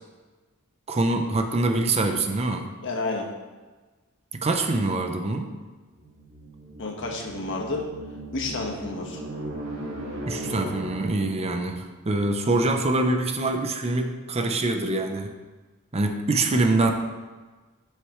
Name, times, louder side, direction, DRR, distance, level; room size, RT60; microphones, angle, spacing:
voice 1, 0.9-2.7 4.3-5.5 10.3-15.3 15.9-16.9, right 2 dB, 30° right, 5 dB, 0.7 m, -24 dB
voice 2, 2.8-3.3 6.8-7.8 8.3-9.2, left 3 dB, 60° left, 1 dB, 1.4 m, -30 dB
sound 1, 5.9-11.4, right 1 dB, 85° right, 2.3 m, -37 dB
12.5 x 6.6 x 3.2 m, 1.3 s
head